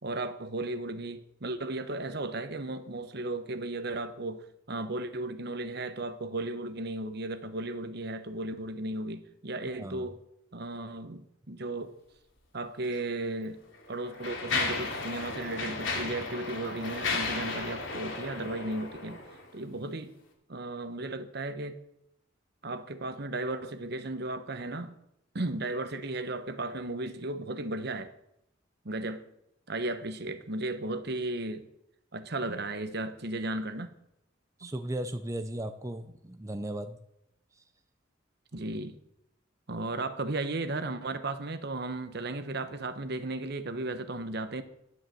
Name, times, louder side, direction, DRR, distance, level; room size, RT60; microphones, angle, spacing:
voice 1, 0.0-10.2 10.5-12.0 12.5-13.6 13.9-19.2 19.5-20.2 20.5-21.8 22.6-25.0 25.3-28.1 28.8-29.3 29.7-31.7 32.1-34.0 34.6-34.7 38.5-39.0 39.7-44.6, right 2 dB, 55° right, 1.1 m, -35 dB
Mechanisms, 12.8-13.0 13.7-19.5, left 3 dB, 80° left, 2.9 m, -34 dB
voice 2, 34.6-37.0, right 1 dB, 15° right, 0.6 m, -36 dB
11.0 x 9.7 x 7.7 m
head